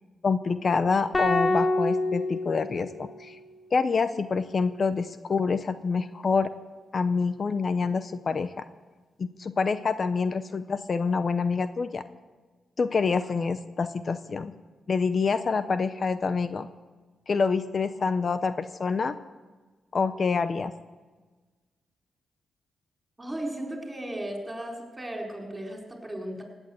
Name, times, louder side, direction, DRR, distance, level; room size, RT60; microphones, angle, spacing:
voice 1, 0.2-3.4 3.7-6.5 6.9-8.5 9.2-12.0 12.8-14.6 14.9-16.7 17.3-19.1 19.9-20.7, left 4 dB, 50° left, 12 dB, 0.7 m, -26 dB
sound 1, 1.1-3.5, left 2 dB, 25° left, 3.2 m, -27 dB
voice 2, 23.2-26.4, right 1 dB, 20° right, 1 dB, 4.4 m, -35 dB
17.0 x 9.0 x 7.8 m, 1.3 s
cardioid pair, 70°, 0 cm